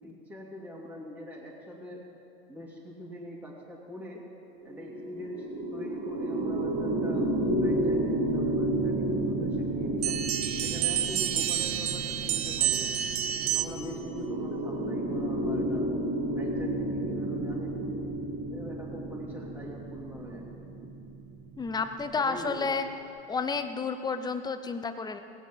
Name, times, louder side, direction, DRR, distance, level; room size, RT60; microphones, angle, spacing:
voice 1, 0.0-2.0 2.5-4.2 4.6-7.3 7.6-10.2 10.6-13.0 13.5-15.9 16.3-17.9 18.5-20.9 22.2-22.7, equal, 5° right, -4 dB, 2.5 m, -43 dB
sound 1, 4.6-22.1, right 1 dB, 30° right, 2.3 m, -31 dB
sound 2, 10.0-13.9, right 11 dB, 75° right, 0.9 m, -29 dB
voice 2, 21.6-22.8 23.3-25.2, left 4 dB, 15° left, 9 dB, 0.8 m, -31 dB
19.0 x 7.2 x 7.5 m, 2.7 s
hypercardioid pair, 120°, 32 cm